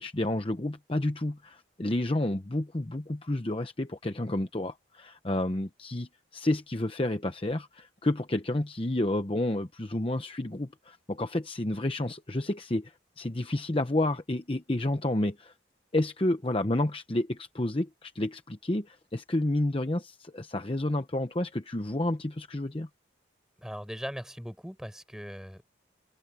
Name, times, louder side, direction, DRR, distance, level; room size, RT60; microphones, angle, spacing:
voice 1, 0.0-15.5 15.9-22.9, left 1 dB, 30° left, 0.9 m, -30 dB
voice 2, 23.6-25.7, equal, 5° right, 7.3 m, -39 dB
open air
head